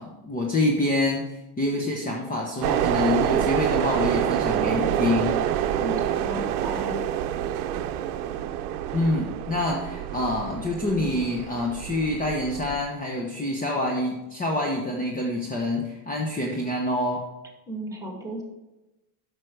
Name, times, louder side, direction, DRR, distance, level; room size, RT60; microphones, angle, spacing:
voice 1, 0.0-5.4 8.9-17.2, left 2 dB, 20° left, 0 dB, 1.1 m, -26 dB
sound 1, 2.6-12.8, right 10 dB, 90° right, 0.7 m, -27 dB
voice 2, 5.8-7.0 17.7-18.4, equal, 5° right, 1 dB, 2.3 m, -34 dB
7.5 x 6.3 x 4.7 m, 1.0 s
supercardioid pair, 115°, 44 cm